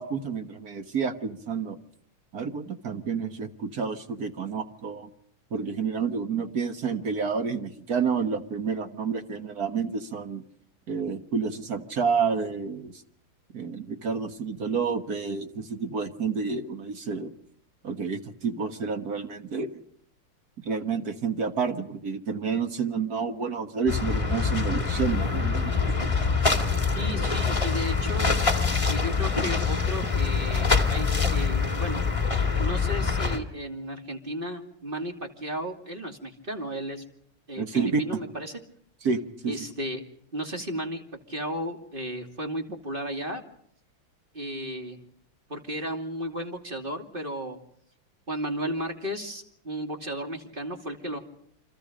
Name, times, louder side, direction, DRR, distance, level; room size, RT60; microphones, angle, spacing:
voice 1, 0.0-1.8 2.3-5.1 5.5-10.4 10.9-13.0 13.5-17.3 17.8-19.8 20.6-25.8 26.5-26.6 37.6-38.2 39.0-39.7, right 5 dB, 50° right, 8 dB, 1.8 m, -29 dB
sound 1, 23.9-33.4, left 5 dB, 15° left, 2.0 m, -25 dB
voice 2, 26.9-28.3 28.9-32.0 32.6-37.0 37.5-38.6 39.5-40.0 40.3-41.0 41.3-43.4 44.3-45.0 45.5-47.6 48.3-51.2, equal, 25° right, 4 dB, 2.8 m, -34 dB
29.5 x 26.0 x 5.2 m, 0.66 s
omnidirectional pair, 2.3 m